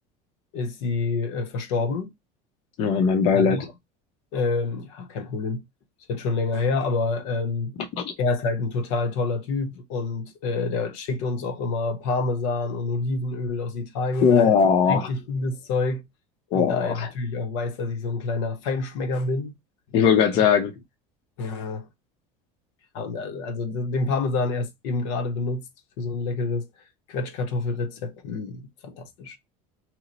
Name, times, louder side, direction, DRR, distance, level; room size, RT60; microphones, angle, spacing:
voice 1, 0.5-2.1 3.3-3.7 4.3-5.6 6.1-7.9 8.2-14.5 14.9-16.0 16.5-19.5 21.4-21.9 22.9-25.6 26.0-26.7 27.1-29.4, left 3 dB, 70° left, 0.7 m, -27 dB
voice 2, 2.8-3.6 14.2-15.1 16.5-17.1 19.9-20.7, left 7 dB, 35° left, 0.5 m, -19 dB
2.9 x 2.0 x 3.8 m
cardioid pair, 180°, 16 cm